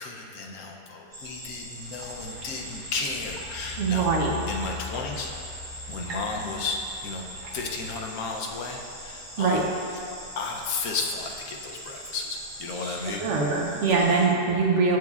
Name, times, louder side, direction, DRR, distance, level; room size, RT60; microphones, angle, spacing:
voice 1, 0.0-4.1 4.5-5.3 5.9-7.3 7.5-9.7 10.4-13.2 13.9-14.2, left 4 dB, 85° left, 1 dB, 1.1 m, -33 dB
sound 1, 1.1-14.2, equal, 30° right, 1.6 m, -42 dB
sound 2, 1.8-7.9, left 2 dB, 85° right, 1.3 m, -41 dB
voice 2, 3.8-4.3 9.4-9.6 12.8-15.0, right 4 dB, 65° right, -2 dB, 1.0 m, -23 dB
8.0 x 6.2 x 2.4 m, 2.6 s
omnidirectional pair, 1.5 m